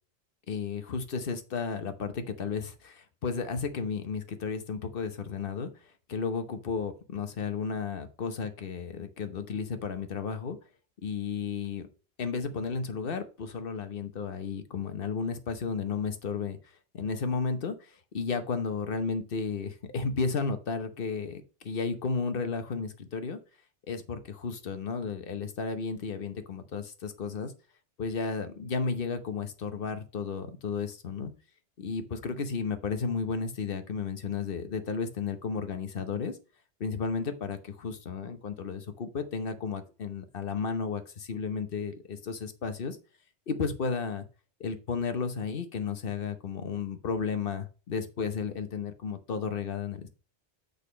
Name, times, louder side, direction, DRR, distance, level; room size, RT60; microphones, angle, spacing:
voice 1, 0.5-5.7 6.1-10.6 11.0-11.9 12.2-16.6 16.9-23.4 23.9-27.5 28.0-31.3 31.8-36.4 36.8-43.0 43.5-44.2 44.6-50.1, left 5 dB, 55° left, 9 dB, 1.1 m, -33 dB
6.5 x 5.3 x 4.9 m, 0.35 s
omnidirectional pair, 1.1 m